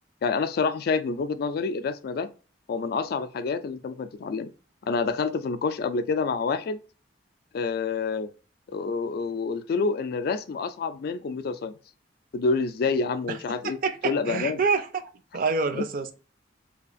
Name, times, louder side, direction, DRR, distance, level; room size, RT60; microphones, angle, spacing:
voice 1, 0.2-2.3 2.7-4.5 4.9-6.8 7.5-8.3 8.7-11.7 12.3-13.8 14.0-14.6 15.8-15.9, left 4 dB, 55° left, 0.3 m, -27 dB
voice 2, 13.6-14.9 15.3-16.1, right 4 dB, 50° right, 0.4 m, -26 dB
2.8 x 2.4 x 2.4 m
head